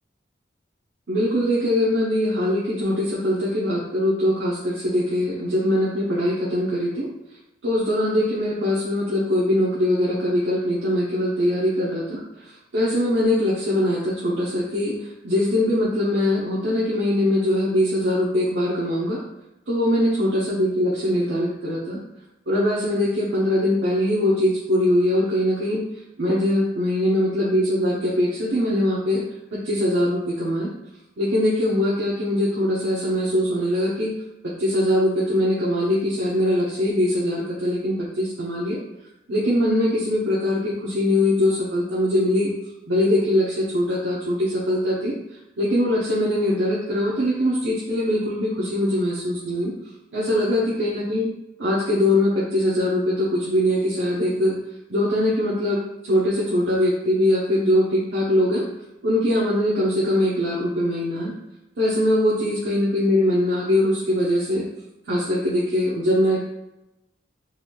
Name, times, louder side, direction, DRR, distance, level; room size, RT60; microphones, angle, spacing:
voice 1, 1.1-7.1 7.6-15.0 15.2-19.2 19.7-22.0 22.5-25.8 26.2-29.2 29.5-30.7 31.2-34.1 34.4-38.8 39.3-42.5 42.9-45.1 45.6-49.7 50.1-51.3 51.6-54.6 54.9-58.6 59.0-61.3 61.8-64.7 65.1-66.4, left 1 dB, 75° right, -7 dB, 0.8 m, -22 dB
4.0 x 2.4 x 3.1 m, 0.92 s
head